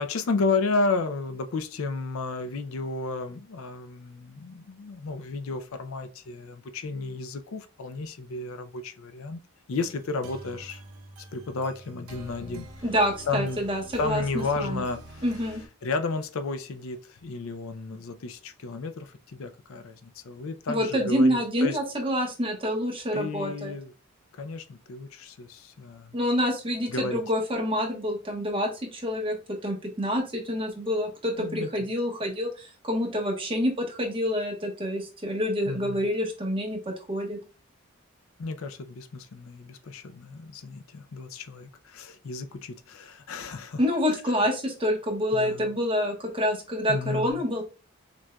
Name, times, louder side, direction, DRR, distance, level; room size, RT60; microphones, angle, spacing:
voice 1, 0.0-9.4 9.7-10.8 11.3-12.7 13.3-13.6 14.0-15.3 15.8-21.8 23.1-23.9 24.3-26.2 26.9-27.2 31.4-31.7 35.7-36.0 38.4-43.8 45.3-45.7 46.9-47.4, left 3 dB, 65° left, 0.4 m, -32 dB
sound 1, 9.8-15.7, right 1 dB, 85° right, 0.7 m, -46 dB
voice 2, 12.8-14.8 15.2-15.6 20.7-23.7 26.1-36.8 37.1-37.4 43.8-47.6, equal, 25° right, 1.0 m, -27 dB
5.9 x 2.5 x 2.2 m
head